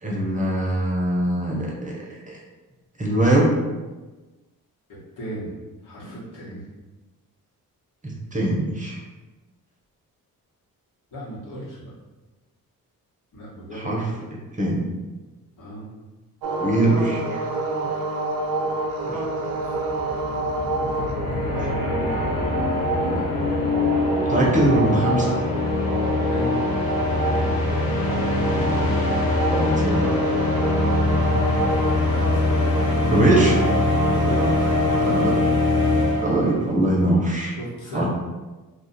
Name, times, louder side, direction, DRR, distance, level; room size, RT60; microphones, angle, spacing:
voice 1, 0.0-2.4 3.0-3.5 8.0-9.0 13.7-14.1 14.6-14.9 16.6-17.5 19.1-19.2 21.6-21.7 24.3-25.4 29.5-30.1 33.1-33.6 35.0-35.3 36.2-37.5 37.9-38.1, right 1 dB, 20° right, -3 dB, 0.8 m, -22 dB
voice 2, 4.9-5.5 5.8-6.7 11.1-11.9 13.3-13.9 15.6-15.9 19.6-19.8 21.5-21.9 23.1-23.5 26.3-26.7 32.1-32.9 34.0-35.1 37.6-38.1, right 1 dB, 65° left, -6 dB, 1.3 m, -35 dB
sound 1, 16.4-35.3, right 2 dB, 80° right, 0.6 m, -28 dB
sound 2, 18.9-19.0 19.2-36.7, left 2 dB, 80° left, 0.7 m, -23 dB
2.4 x 2.4 x 4.1 m, 1.2 s
cardioid pair, 75°, 35 cm